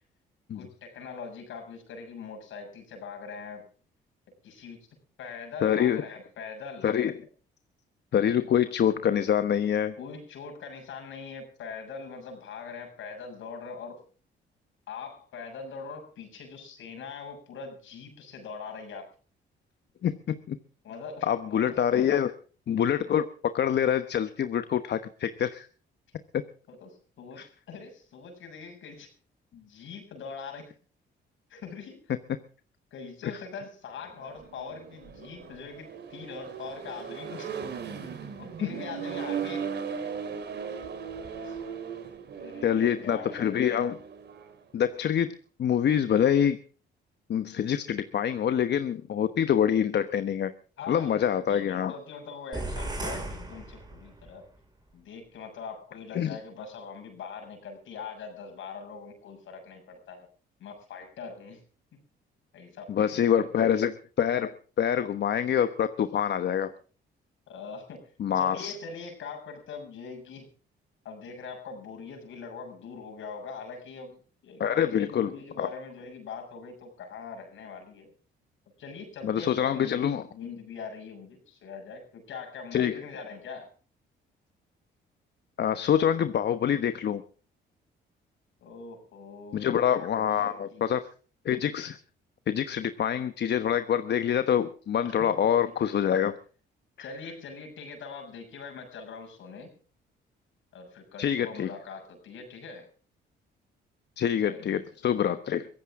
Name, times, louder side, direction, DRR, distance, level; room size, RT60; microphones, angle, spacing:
voice 1, 0.6-3.7 4.4-4.9 5.2-6.9 10.0-14.0 14.9-19.1 20.8-22.1 26.7-29.1 29.5-30.7 31.5-32.1 32.9-37.5 38.4-39.7 41.4-41.6 42.4-43.5 50.8-54.5 54.9-60.3 60.6-61.6 61.9-62.0 62.5-63.5 67.5-70.5 71.0-78.1 78.8-83.7 88.6-89.7 89.9-90.9 95.0-95.3 97.0-99.7 100.7-102.9 104.4-104.8 105.2-105.3, left 5 dB, 75° left, 5 dB, 7.0 m, -42 dB
voice 2, 5.6-6.0 6.8-7.1 8.1-10.0 20.0-20.6 21.2-22.3 22.7-25.7 26.3-26.4 27.4-27.5 38.6-38.7 42.6-44.0 44.7-46.6 47.3-50.5 50.9-51.9 56.1-56.4 62.9-66.7 68.2-68.7 74.6-75.3 75.6-75.7 79.2-80.2 82.7-83.0 85.6-87.2 89.5-91.1 91.4-92.0 92.5-96.4 101.2-101.7 104.2-105.7, left 9 dB, 60° left, 10 dB, 1.2 m, -26 dB
Accelerating revving vroom, 34.1-44.5, right 7 dB, 60° right, 3.7 m, -38 dB
sound 1, 52.5-54.4, right 1 dB, 20° right, 5.4 m, -36 dB
23.5 x 16.0 x 3.7 m, 0.40 s
cardioid pair, 90°, 20 cm